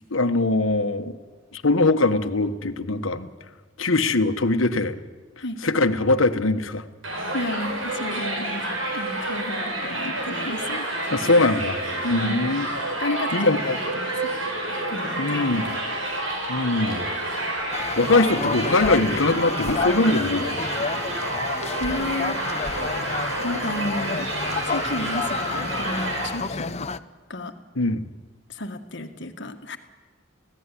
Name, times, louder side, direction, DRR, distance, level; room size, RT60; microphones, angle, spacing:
voice 1, 0.1-1.2 1.5-3.3 3.8-5.0 5.4-6.8 11.1-11.8 12.1-12.6 13.3-13.8 15.2-15.7 16.5-17.1 18.0-20.6 27.8-28.0, left 2 dB, 90° left, 9 dB, 1.3 m, -22 dB
Crowd, 7.0-26.3, right 1 dB, 80° right, 7.6 m, -29 dB
voice 2, 7.3-8.6 8.9-11.0 12.0-12.4 13.0-14.3 14.9-15.8 21.8-22.4 23.4-24.3 24.7-26.9 27.3-27.5 28.5-29.8, left 1 dB, 60° left, 6 dB, 1.7 m, -32 dB
sound 1, 17.7-27.0, left 4 dB, 35° left, 0.7 m, -30 dB
sound 2, 18.8-18.9 19.6-19.8 21.8-21.9 22.6-22.8, left 1 dB, 10° left, 4.0 m, -36 dB
26.0 x 17.0 x 10.0 m, 1.4 s
head